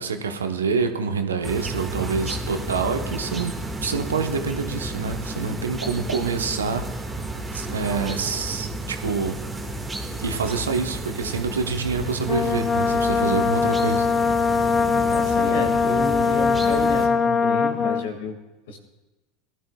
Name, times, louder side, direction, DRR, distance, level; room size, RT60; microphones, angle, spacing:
voice 1, 0.0-6.9 7.5-9.4 10.2-14.1, right 5 dB, 85° right, 7 dB, 0.9 m, -26 dB
sound 1, 1.4-17.1, right 2 dB, 15° right, 1.8 m, -32 dB
Brass instrument, 12.3-18.1, left 5 dB, 25° left, 0.5 m, -21 dB
voice 2, 15.1-18.4 18.7-18.8, left 3 dB, 70° left, 5 dB, 1.9 m, -31 dB
18.5 x 12.5 x 2.3 m, 1.1 s
hypercardioid pair, 80°, 0 cm